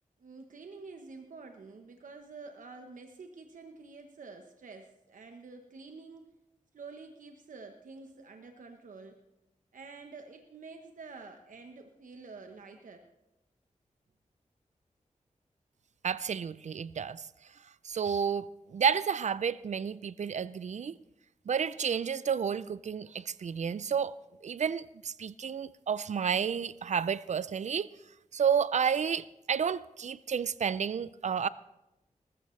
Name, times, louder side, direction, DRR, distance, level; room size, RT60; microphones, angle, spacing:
voice 1, 0.2-6.3 6.7-9.2 9.7-13.1, right 4 dB, 80° right, 1.0 m, -48 dB
voice 2, 16.0-17.2 17.8-21.0 21.5-24.1 24.4-27.9 28.3-31.5, right 7 dB, 65° right, 0.4 m, -31 dB
20.0 x 13.5 x 3.2 m
wide cardioid pair, 70°, 13 cm